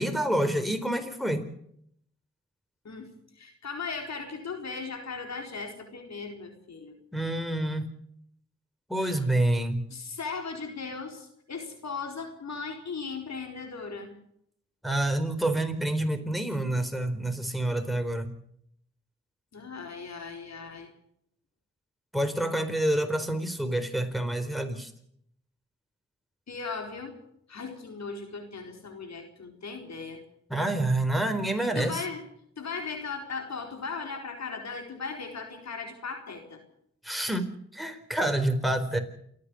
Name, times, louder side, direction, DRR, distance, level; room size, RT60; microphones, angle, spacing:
voice 1, 0.0-1.4 7.1-7.9 8.9-9.8 14.8-18.3 22.1-24.9 30.5-32.0 37.0-39.0, right 1 dB, ahead, 6 dB, 4.1 m, -28 dB
voice 2, 2.8-7.0 9.0-9.2 9.9-14.1 19.5-20.9 26.5-27.2 27.5-30.2 31.6-32.2 32.6-36.6, left 4 dB, 65° left, 4 dB, 4.3 m, -37 dB
28.5 x 9.6 x 9.7 m, 0.71 s
cardioid pair, 50°, 30 cm